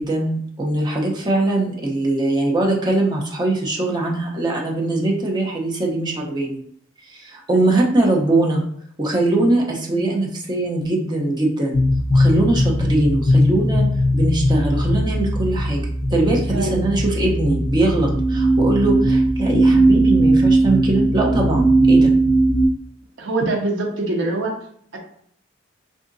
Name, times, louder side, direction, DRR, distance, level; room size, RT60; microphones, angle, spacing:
voice 1, 0.0-6.6 7.1-8.6 9.0-11.8 12.1-13.8 14.1-15.8 16.1-22.1, right 2 dB, 20° right, -1 dB, 0.6 m, -21 dB
voice 2, 7.5-7.8 9.9-10.2 16.5-16.8 23.2-24.6 24.9-25.0, right 2 dB, 70° right, 0 dB, 0.7 m, -24 dB
sound 1, 11.7-22.7, right 1 dB, 45° left, 0.7 m, -18 dB
3.7 x 2.7 x 2.6 m, 0.66 s
head